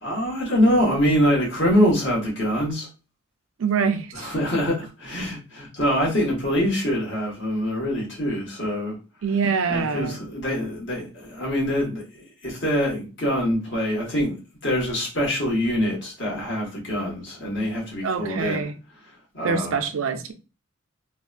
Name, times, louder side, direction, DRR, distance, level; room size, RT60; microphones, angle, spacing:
voice 1, 0.0-2.9 4.1-9.0 9.7-14.4 14.6-18.6 19.3-19.8, equal, 60° left, 1.4 m, -24 dB
voice 2, 3.6-4.3 9.2-10.2 18.0-18.7 19.4-20.3, right 5 dB, 80° right, 0.4 m, -25 dB
3.3 x 2.2 x 2.4 m
head